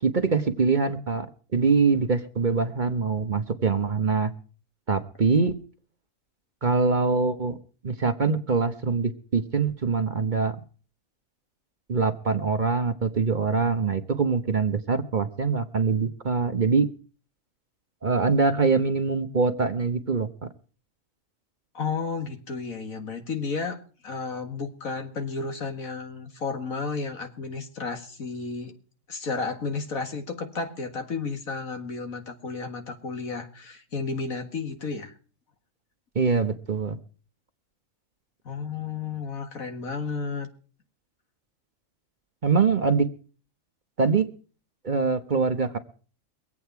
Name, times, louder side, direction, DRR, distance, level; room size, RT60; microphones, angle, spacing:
voice 1, 0.0-1.3 1.5-4.3 4.9-5.5 6.6-7.6 7.8-10.6 11.9-16.9 18.0-20.3 36.1-37.0 42.4-43.1 44.0-44.2 44.8-45.8, right 4 dB, 40° right, 9 dB, 1.0 m, -23 dB
voice 2, 21.7-28.7 29.1-35.1 38.5-40.5, left 4 dB, 80° left, 6 dB, 2.3 m, -32 dB
23.5 x 8.5 x 4.6 m, 0.39 s
omnidirectional pair, 1.4 m